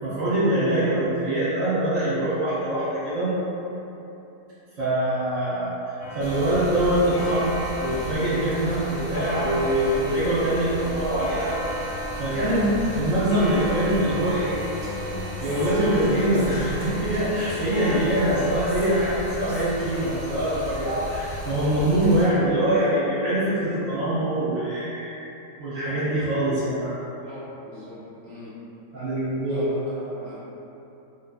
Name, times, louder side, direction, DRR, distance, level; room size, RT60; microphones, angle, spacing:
voice 1, 0.0-3.3 4.8-7.5 7.8-11.9 12.2-14.6 15.4-25.2 25.6-27.3 28.9-29.7, right 1 dB, 65° right, -12 dB, 1.1 m, -24 dB
Clock, 6.0-22.1, equal, 70° left, 0.8 m, -35 dB
Stream, 6.2-22.2, left 1 dB, 35° left, 0.7 m, -36 dB
voice 2, 12.3-12.8 27.2-28.6 29.0-29.1 29.5-30.4, equal, 30° right, -10 dB, 1.0 m, -41 dB
Female speech woman speaking, 14.7-20.1, equal, 85° right, 1.3 m, -41 dB
2.7 x 2.6 x 2.3 m, 3.0 s
omnidirectional pair, 1.6 m